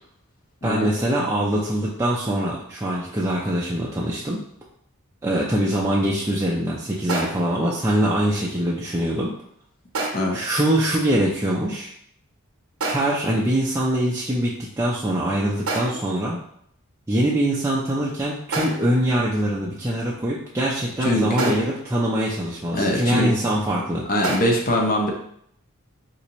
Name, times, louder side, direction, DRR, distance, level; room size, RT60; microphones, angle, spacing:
voice 1, 0.6-4.4 5.2-9.3 10.3-11.9 12.8-16.4 17.1-24.0, right 1 dB, 15° right, -5 dB, 0.4 m, -23 dB
sound 1, 7.1-7.6 9.9-10.5 12.8-13.3 15.7-16.2 18.5-19.0 21.4-21.9 24.2-24.4, right 3 dB, 70° right, 0.7 m, -29 dB
voice 2, 21.0-21.6 22.7-23.3 24.1-25.1, left 1 dB, 40° left, 0 dB, 0.7 m, -22 dB
4.0 x 2.6 x 2.9 m, 0.68 s
head